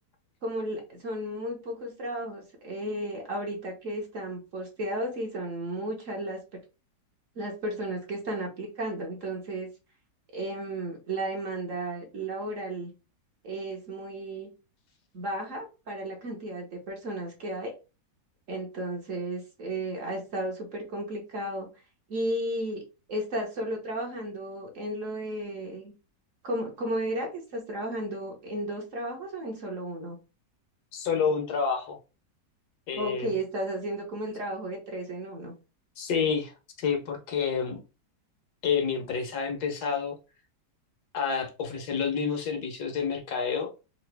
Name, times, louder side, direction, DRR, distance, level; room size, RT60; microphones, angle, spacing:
voice 1, 0.4-6.4 7.3-9.7 10.3-12.9 13.4-14.5 15.1-17.7 18.5-21.7 22.1-22.8 23.1-25.9 26.4-30.2 32.9-35.5, right 1 dB, 50° right, 1.3 m, -34 dB
voice 2, 30.9-32.0 32.9-33.3 36.0-37.8 38.6-40.2 41.1-43.7, left 6 dB, 70° left, 1.4 m, -29 dB
3.9 x 2.7 x 3.3 m
omnidirectional pair, 1.8 m